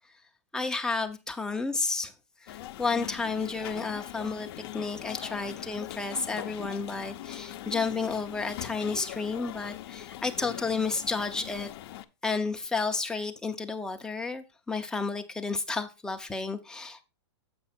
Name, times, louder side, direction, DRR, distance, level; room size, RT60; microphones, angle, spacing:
voice 1, 0.5-2.1 2.4-11.7 12.2-17.0, left 4 dB, 5° left, 0.6 m, -31 dB
sound 1, 2.5-12.0, left 13 dB, 55° left, 0.6 m, -41 dB
7.8 x 5.5 x 4.2 m
hypercardioid pair, 150°, 15 cm